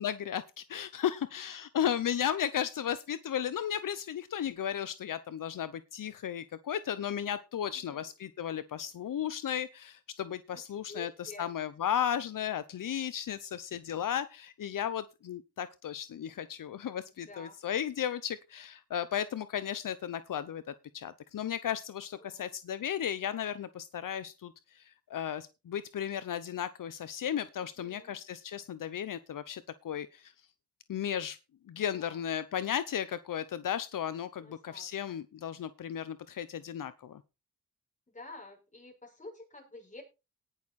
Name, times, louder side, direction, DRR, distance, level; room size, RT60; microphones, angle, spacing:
voice 1, 0.0-20.6 20.9-30.3 30.9-31.4 31.7-37.2, left 9 dB, 75° left, 14 dB, 0.8 m, -35 dB
voice 2, 7.7-8.1 10.5-11.5 17.1-17.6 22.2-22.6 27.6-28.2 31.7-32.3 34.4-35.2 38.1-40.0, left 2 dB, 20° left, 1 dB, 6.7 m, -50 dB
18.5 x 6.6 x 4.2 m, 0.28 s
wide cardioid pair, 115°, 33 cm